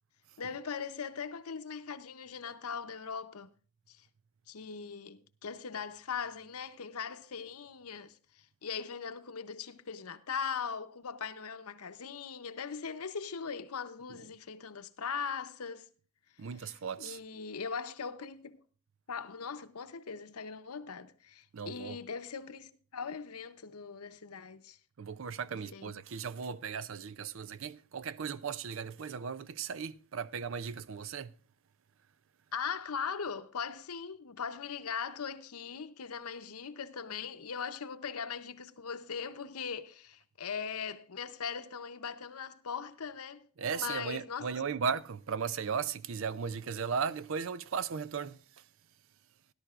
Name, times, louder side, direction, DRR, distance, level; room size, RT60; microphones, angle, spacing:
voice 1, 0.4-3.5 3.9-4.1 4.5-15.9 16.6-18.6 19.1-24.8 25.5-26.0 32.5-43.5 43.7-44.7, left 6 dB, 90° left, 0.8 m, -40 dB
voice 2, 16.4-17.2 21.5-22.0 25.0-31.4 43.6-48.7, right 6 dB, 65° right, 0.5 m, -36 dB
18.0 x 11.5 x 2.4 m
head